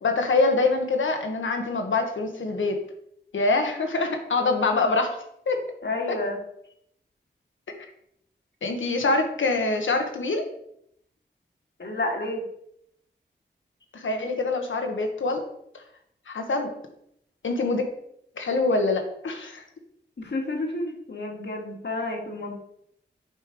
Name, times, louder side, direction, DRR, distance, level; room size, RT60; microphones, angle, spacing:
voice 1, 0.0-2.8 3.3-5.2 5.5-5.6 6.1-6.2 8.6-10.4 13.9-15.5 15.7-15.8 16.3-16.7 17.4-17.8 18.4-19.6, left 3 dB, 80° left, 4 dB, 1.2 m, -25 dB
voice 2, 5.8-6.4 11.8-12.4 20.2-22.5, left 2 dB, 65° left, 0 dB, 1.8 m, -30 dB
8.1 x 3.3 x 5.2 m, 0.72 s
cardioid pair, 45°, 20 cm